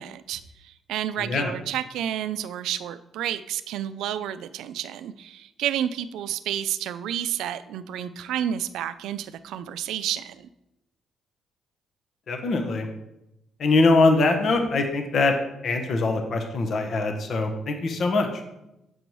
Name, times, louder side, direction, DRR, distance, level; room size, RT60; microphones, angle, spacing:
voice 1, 0.0-10.5, right 10 dB, 85° right, 13 dB, 0.3 m, -30 dB
voice 2, 1.2-1.5 12.3-12.9 13.6-15.3 15.6-18.3, left 3 dB, 55° left, 5 dB, 0.8 m, -22 dB
7.7 x 5.3 x 3.1 m, 0.88 s
cardioid pair, 90°, 0 cm